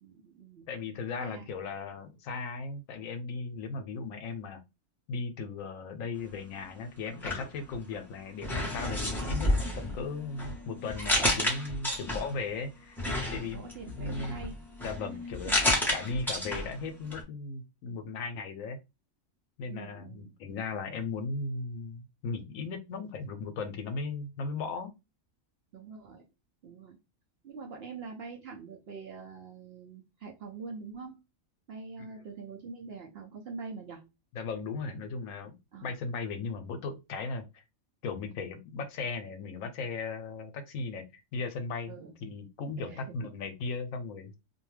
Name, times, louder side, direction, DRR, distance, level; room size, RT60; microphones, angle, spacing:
voice 1, 0.0-0.7 1.2-1.5 12.0-12.3 13.5-14.6 15.4-15.7 19.7-20.3 25.7-26.2 26.6-27.0 27.4-31.2 31.7-34.1 35.7-36.0 41.9-42.1 42.8-43.1, right 4 dB, 60° right, 0.7 m, -44 dB
voice 2, 0.7-4.6 5.1-13.0 13.3-13.6 14.0-14.4 14.8-15.5 15.9-18.8 19.6-24.9 34.3-37.6 38.0-41.9 42.2-44.3, left 4 dB, 75° left, 1.0 m, -37 dB
sound 1, 7.1-8.0 8.4-12.5 13.0-16.8 17.1-17.2, left 1 dB, ahead, 0.6 m, -31 dB
2.5 x 2.2 x 3.1 m
omnidirectional pair, 1.4 m